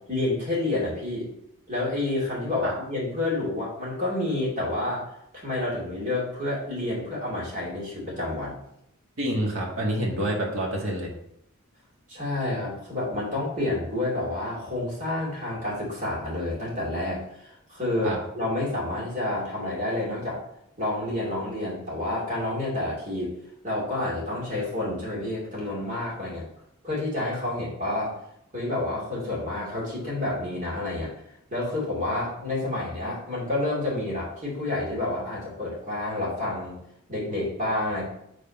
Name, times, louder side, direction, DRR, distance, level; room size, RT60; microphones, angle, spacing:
voice 1, 0.1-1.3 1.7-5.0 5.4-8.6 12.1-20.4 20.8-23.3 23.6-26.4 26.8-28.1 28.5-31.1 31.5-36.8 37.1-38.0, left 2 dB, 35° right, -5 dB, 2.6 m, -29 dB
voice 2, 9.2-11.1 18.0-18.2, right 1 dB, 65° right, -2 dB, 1.8 m, -27 dB
5.2 x 4.1 x 5.3 m, 0.76 s
head